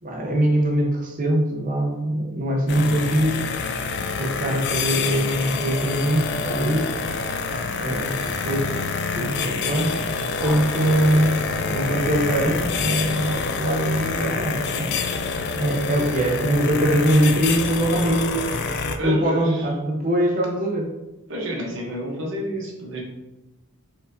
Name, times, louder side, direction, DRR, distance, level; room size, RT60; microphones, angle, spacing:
voice 1, 0.0-3.5 4.2-6.9 7.8-8.7 9.1-10.1 10.4-14.9 15.2-18.6 19.0-20.9, right 1 dB, 35° right, 0 dB, 0.7 m, -23 dB
sound 1, 2.7-19.0, left 4 dB, 50° left, 0.3 m, -27 dB
Thunder, 10.3-17.3, left 1 dB, 5° left, 0.9 m, -38 dB
voice 2, 19.0-19.7 21.3-23.0, right 1 dB, 55° right, -2 dB, 1.0 m, -29 dB
4.3 x 3.9 x 2.7 m, 1.0 s
head